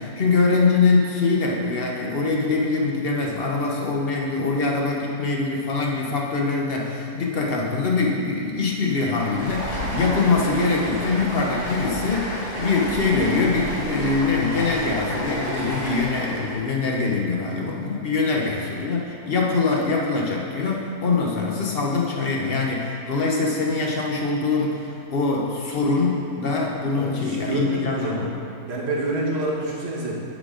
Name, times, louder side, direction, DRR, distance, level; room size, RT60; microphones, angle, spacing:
voice 1, 0.0-28.3, left 4 dB, 45° left, -1 dB, 0.9 m, -23 dB
Stream, 9.0-16.6, equal, 80° left, 2.2 m, -31 dB
voice 2, 27.0-28.3 28.7-30.2, right 2 dB, 45° right, -4 dB, 1.3 m, -27 dB
8.2 x 4.2 x 5.0 m, 2.8 s
omnidirectional pair, 1.7 m